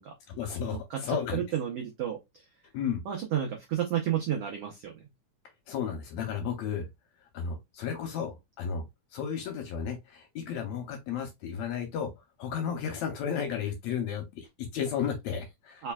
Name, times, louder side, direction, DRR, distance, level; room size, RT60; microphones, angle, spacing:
voice 1, 0.3-1.4 2.7-3.0 5.7-6.9 7.3-8.8 9.1-12.1 12.4-15.8, left 7 dB, 75° left, 1.8 m, -33 dB
voice 2, 0.9-2.2 3.0-5.0 15.8-15.9, right 10 dB, 80° right, 1.3 m, -31 dB
4.4 x 3.3 x 2.2 m
omnidirectional pair, 3.7 m